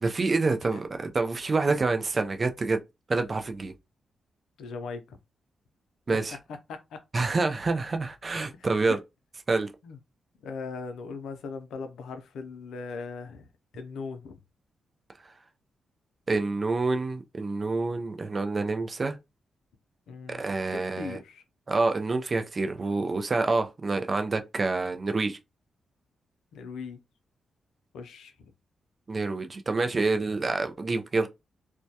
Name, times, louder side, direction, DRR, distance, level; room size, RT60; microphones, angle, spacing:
voice 1, 0.0-2.8 3.1-3.7 6.1-6.4 7.1-9.0 9.5-9.7 16.3-19.2 20.3-21.2 21.7-25.4 29.1-31.3, right 3 dB, 40° right, 0.4 m, -27 dB
voice 2, 4.6-5.2 6.7-7.0 8.6-9.0 9.8-10.0 10.4-13.5 13.7-14.4 20.1-20.5 20.7-21.4 26.5-27.0 27.9-28.5, left 4 dB, 90° left, 0.5 m, -39 dB
2.2 x 2.1 x 2.7 m
cardioid pair, 80°, 0 cm